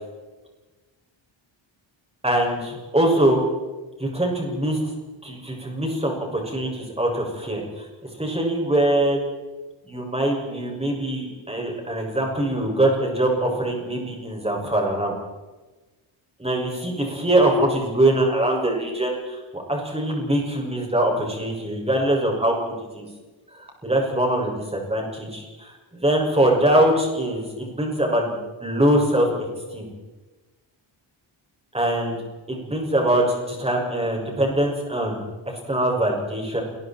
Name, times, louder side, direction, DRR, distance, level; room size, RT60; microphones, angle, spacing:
voice 1, 2.2-3.4 4.0-4.8 5.2-7.9 8.2-9.2 9.8-15.1 16.4-23.1 23.6-29.9 31.7-32.2 32.5-36.6, right 1 dB, 10° right, 0 dB, 6.7 m, -23 dB
29.0 x 21.5 x 4.6 m, 1.2 s
wide cardioid pair, 140°, 48 cm